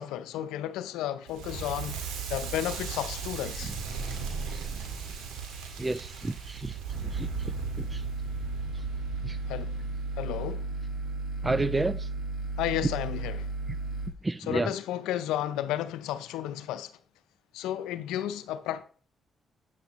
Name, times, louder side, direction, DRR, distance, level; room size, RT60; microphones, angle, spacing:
voice 1, 0.0-3.7 9.5-9.7 10.2-10.7 12.6-13.5 14.4-16.9 17.5-18.8, left 12 dB, 85° left, 0.5 m, -33 dB
Crackle, 1.3-10.2, right 6 dB, 85° right, 1.8 m, -37 dB
voice 2, 5.8-6.8 7.1-7.3 7.9-8.0 9.2-9.4 11.4-12.1 14.2-14.7, right 2 dB, 25° right, 0.4 m, -30 dB
sound 1, 6.9-14.1, right 3 dB, 60° right, 2.0 m, -34 dB
9.1 x 7.9 x 3.0 m
supercardioid pair, 55°, 0 cm